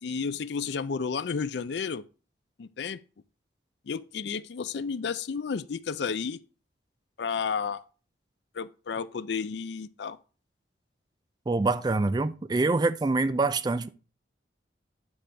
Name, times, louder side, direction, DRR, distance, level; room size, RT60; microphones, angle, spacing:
voice 1, 0.0-2.0 2.6-3.0 3.9-6.4 7.2-7.8 8.5-10.2, left 5 dB, 65° left, 0.4 m, -32 dB
voice 2, 11.5-13.9, right 3 dB, 20° right, 0.3 m, -25 dB
9.9 x 3.4 x 6.8 m
head